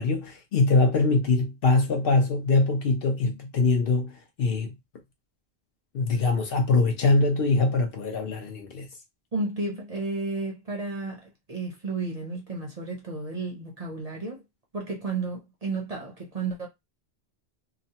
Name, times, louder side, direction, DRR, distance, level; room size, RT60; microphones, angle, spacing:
voice 1, 0.0-4.1 4.4-4.7 5.9-8.9, left 3 dB, 60° left, 0.8 m, -23 dB
voice 2, 9.3-14.4 14.7-16.7, right 3 dB, 40° right, 0.7 m, -32 dB
2.9 x 2.0 x 2.8 m
omnidirectional pair, 1.2 m